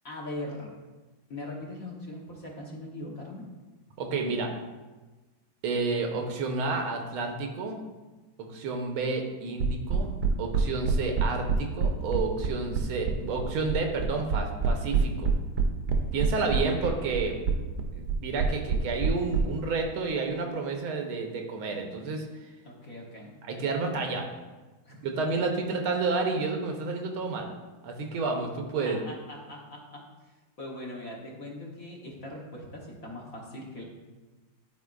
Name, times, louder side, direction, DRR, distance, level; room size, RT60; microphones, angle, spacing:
voice 1, 0.0-0.8 1.3-3.4 16.5-16.9 22.6-23.3 24.9-25.0 28.8-30.1 30.6-33.8, left 1 dB, 50° left, -2 dB, 1.3 m, -40 dB
voice 2, 4.0-4.5 5.6-7.8 8.4-15.3 16.1-17.4 17.9-22.3 23.4-24.2 25.0-27.5 27.8-29.0, right 4 dB, 85° right, 3 dB, 1.7 m, -30 dB
sound 1, 9.6-19.4, right 6 dB, 65° right, 1.1 m, -26 dB
12.5 x 4.5 x 2.4 m, 1.2 s
omnidirectional pair, 2.3 m